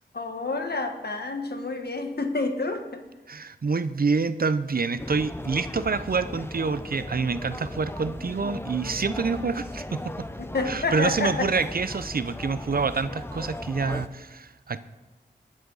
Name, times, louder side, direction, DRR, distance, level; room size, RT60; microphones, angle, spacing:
voice 1, 0.1-3.0 10.4-11.5, left 3 dB, 65° left, 5 dB, 1.5 m, -29 dB
voice 2, 3.3-10.3 10.7-14.8, right 4 dB, 55° right, 13 dB, 0.6 m, -27 dB
sound 1, 5.0-14.1, left 1 dB, 15° left, 0.7 m, -37 dB
18.0 x 10.0 x 4.0 m, 1.1 s
cardioid pair, 50°, 18 cm